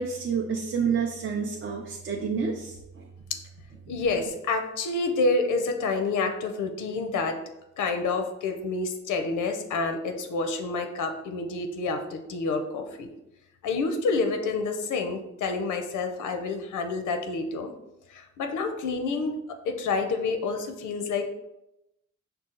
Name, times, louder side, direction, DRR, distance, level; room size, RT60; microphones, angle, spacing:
voice 1, 0.0-3.0 3.9-4.0, right 6 dB, 40° right, 0 dB, 0.4 m, -29 dB
voice 2, 3.9-7.4 7.8-13.1 13.6-17.7 18.1-21.3, left 3 dB, 85° left, 6 dB, 0.6 m, -28 dB
5.6 x 2.3 x 3.7 m, 0.88 s
wide cardioid pair, 150°, 30 cm